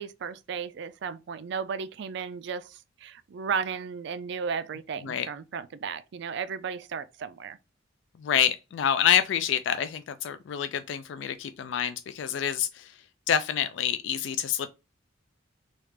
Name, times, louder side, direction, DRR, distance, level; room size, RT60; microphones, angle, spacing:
voice 1, 0.0-7.6, right 6 dB, 60° right, 0.3 m, -34 dB
voice 2, 8.2-12.9 13.3-14.7, left 9 dB, 65° left, 0.3 m, -27 dB
3.2 x 2.4 x 3.2 m
head